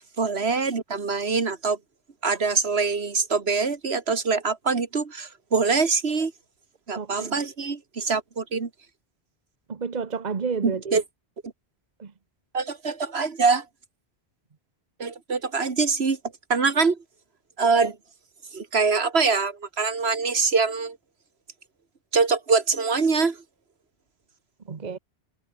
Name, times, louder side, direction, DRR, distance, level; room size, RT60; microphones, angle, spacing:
voice 1, 0.2-1.8 2.2-6.3 6.9-8.7 10.6-11.0 12.5-13.7 15.0-16.2 16.5-17.0 17.6-18.0 18.5-21.0 22.1-23.4, right 4 dB, 75° right, 2.1 m, -24 dB
voice 2, 7.0-7.4 9.7-11.0 12.0-12.1 24.6-25.0, right 5 dB, 45° right, 1.2 m, -30 dB
omnidirectional pair, 1.1 m